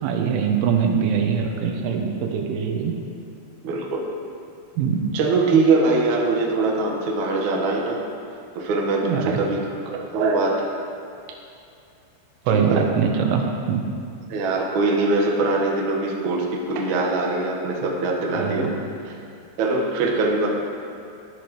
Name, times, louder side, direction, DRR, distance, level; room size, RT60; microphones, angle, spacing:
voice 1, 0.0-2.9 4.8-5.0 9.0-9.4 12.5-13.9 18.3-18.7, right 7 dB, 85° right, 2 dB, 3.4 m, -22 dB
voice 2, 3.6-4.0 5.1-8.0 8.6-10.7 12.5-12.9 14.3-18.7 19.1-19.2 19.6-20.5, right 3 dB, 60° right, -2 dB, 2.0 m, -22 dB
18.0 x 11.0 x 3.2 m, 2.5 s
omnidirectional pair, 5.6 m